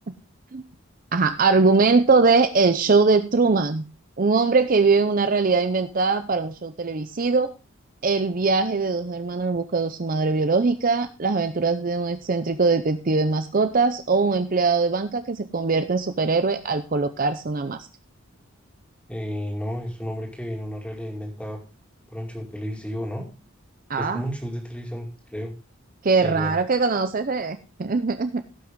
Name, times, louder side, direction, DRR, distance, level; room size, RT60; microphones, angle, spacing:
voice 1, 1.1-3.8 4.2-7.5 8.0-17.9 23.9-24.2 26.0-28.4, right 4 dB, 40° right, 10 dB, 0.6 m, -21 dB
voice 2, 19.1-21.6 22.1-23.2 24.0-25.5 26.2-26.6, equal, 5° left, 1 dB, 2.5 m, -32 dB
17.0 x 6.0 x 3.7 m, 0.32 s
head